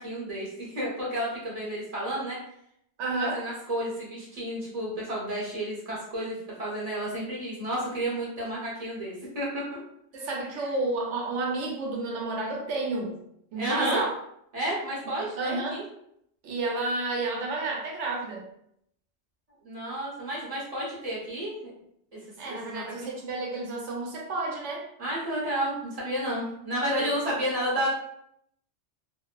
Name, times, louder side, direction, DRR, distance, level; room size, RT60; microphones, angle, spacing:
voice 1, 0.0-2.4 3.2-9.8 10.6-10.7 13.6-14.0 14.5-15.8 19.6-21.5 22.1-23.1 25.0-27.9, right 1 dB, 35° right, -6 dB, 0.9 m, -31 dB
voice 2, 3.0-3.4 10.1-13.2 13.5-14.1 15.4-15.8 16.4-18.5 22.4-24.8 27.0-27.1, right 3 dB, 75° right, -1 dB, 1.0 m, -31 dB
2.8 x 2.0 x 2.3 m, 0.73 s
omnidirectional pair, 1.2 m